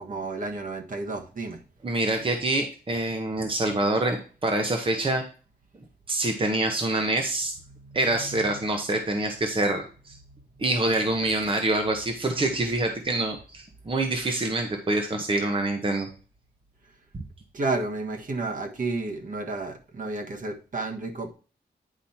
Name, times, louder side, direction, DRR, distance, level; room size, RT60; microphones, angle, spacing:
voice 1, 0.0-1.6 7.7-8.7 10.3-10.6 17.5-21.3, right 3 dB, 50° right, 3 dB, 1.5 m, -32 dB
voice 2, 1.8-5.2 6.1-7.5 7.9-10.2 10.6-16.1, right 2 dB, 30° right, 4 dB, 1.1 m, -26 dB
9.9 x 5.1 x 4.4 m, 0.37 s
wide cardioid pair, 145°, 17 cm